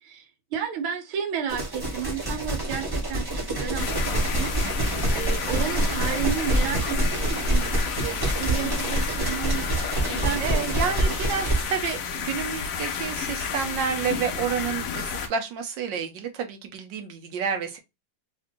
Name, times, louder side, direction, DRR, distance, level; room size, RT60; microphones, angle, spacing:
voice 1, 0.5-4.6 5.1-10.6, right 8 dB, 85° right, 1.6 m, -32 dB
sound 1, 1.5-11.6, right 1 dB, 15° right, 0.8 m, -26 dB
sound 2, 3.8-15.3, left 6 dB, 80° left, 0.7 m, -31 dB
voice 2, 4.6-5.0 10.4-17.8, right 6 dB, 70° right, 1.4 m, -30 dB
3.6 x 2.3 x 3.6 m
omnidirectional pair, 2.2 m